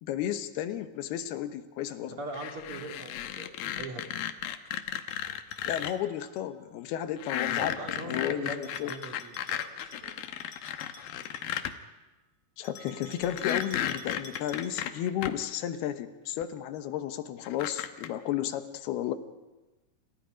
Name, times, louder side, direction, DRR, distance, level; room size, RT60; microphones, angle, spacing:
voice 1, 0.0-2.2 5.7-7.8 8.0-8.9 12.6-19.2, left 11 dB, 90° left, 9 dB, 3.1 m, -33 dB
voice 2, 2.2-3.5 3.7-4.0 7.6-10.3, right 2 dB, 40° right, 2 dB, 3.2 m, -41 dB
sound 1, 2.3-5.9 7.2-11.7 13.2-15.3 16.4-16.5 17.4-18.1, left 10 dB, 75° left, 2.7 m, -34 dB
Bell, 4.7-6.5 8.6-11.9 12.6-15.0, equal, 40° left, 2.5 m, -52 dB
30.0 x 28.0 x 5.1 m, 1.1 s
omnidirectional pair, 4.4 m